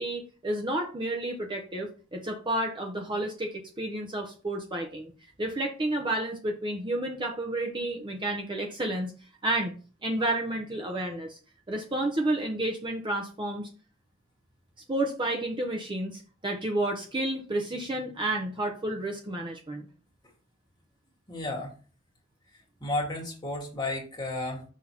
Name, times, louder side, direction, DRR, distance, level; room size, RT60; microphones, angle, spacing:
voice 1, 0.0-5.1 5.4-9.1 9.4-9.7 10.0-11.4 11.7-13.7 14.9-19.9, right 1 dB, 25° right, 1 dB, 0.8 m, -31 dB
voice 2, 21.3-21.7 22.8-24.7, left 2 dB, 20° left, -2 dB, 1.9 m, -32 dB
6.1 x 3.1 x 5.6 m, 0.37 s
head